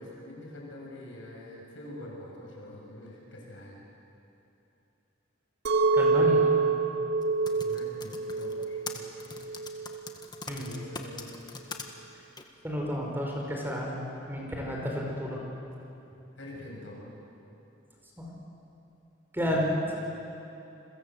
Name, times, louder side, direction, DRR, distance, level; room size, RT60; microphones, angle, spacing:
voice 1, 0.0-3.8 7.4-9.6 10.5-11.3 16.4-17.2 19.4-19.7, left 1 dB, 75° left, -2 dB, 7.5 m, -45 dB
Chink clink, 5.7-10.8, right 4 dB, 60° right, 2.2 m, -27 dB
voice 2, 5.9-6.4 10.5-10.7 12.6-15.4 18.2-18.3 19.3-19.7, equal, 10° right, -1 dB, 4.8 m, -31 dB
Typing, 7.2-11.9 12.4-12.5, left 4 dB, 20° left, 1.9 m, -41 dB
30.0 x 22.5 x 8.0 m, 2.9 s
head